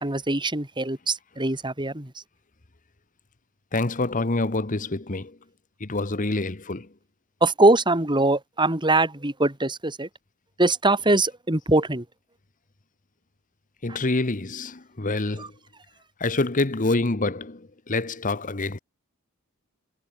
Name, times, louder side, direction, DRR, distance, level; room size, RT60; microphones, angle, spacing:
voice 1, 0.0-2.1 7.4-10.1 10.6-12.0 15.4-15.5, right 2 dB, 20° right, 3.1 m, -22 dB
voice 2, 3.7-5.4 5.8-6.9 13.8-15.5 16.2-18.8, left 2 dB, 40° left, 1.2 m, -26 dB
head